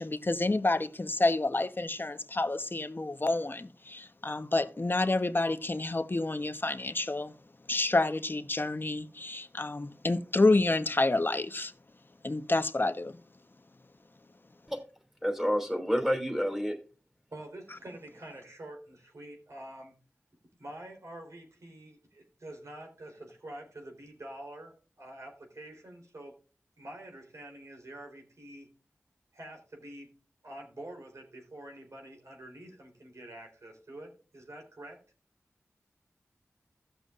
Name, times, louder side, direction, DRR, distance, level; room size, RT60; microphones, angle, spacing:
voice 1, 0.0-7.3 7.7-11.7 12.2-13.2, left 2 dB, 40° left, 1.0 m, -29 dB
voice 2, 15.2-16.8, equal, 5° right, 2.8 m, -29 dB
voice 3, 17.3-20.0 20.6-26.3 26.8-28.7 29.3-30.2 30.4-35.0, right 1 dB, 70° right, 3.7 m, -47 dB
16.0 x 6.7 x 2.5 m
cardioid pair, 40°, 5 cm